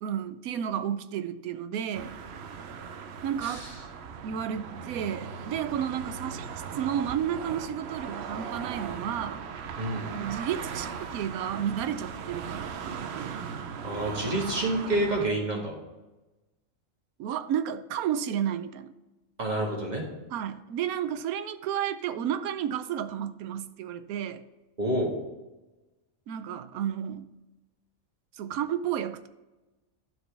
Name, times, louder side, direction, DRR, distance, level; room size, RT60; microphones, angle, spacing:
voice 1, 0.0-2.1 3.2-3.7 4.2-6.5 6.8-9.4 10.1-13.4 17.2-18.9 20.3-24.4 26.3-27.3 28.4-29.3, right 9 dB, 90° right, 11 dB, 1.1 m, -32 dB
sound 1, 1.9-15.3, right 6 dB, 60° right, 0.7 m, -38 dB
voice 2, 3.4-3.7 9.8-10.1 13.8-15.8 19.4-20.0 24.8-25.1, right 1 dB, 30° right, -1 dB, 1.6 m, -28 dB
12.0 x 4.5 x 3.3 m, 1.1 s
omnidirectional pair, 1.5 m